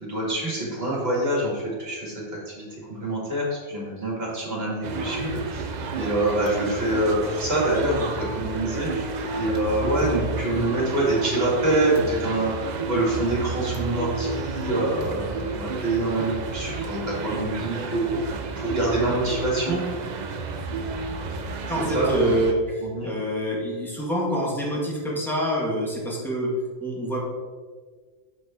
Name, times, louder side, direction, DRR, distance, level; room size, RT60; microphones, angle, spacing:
voice 1, 0.0-5.7 6.0-9.1 9.3-12.6 12.9-19.8 21.7-22.3 22.8-23.1, right 1 dB, 45° right, -4 dB, 2.2 m, -26 dB
sound 1, 4.8-22.5, right 4 dB, 80° right, 0.4 m, -31 dB
voice 2, 21.7-26.5 26.8-27.2, equal, ahead, -5 dB, 1.5 m, -26 dB
6.5 x 4.5 x 4.2 m, 1.5 s
omnidirectional pair, 1.4 m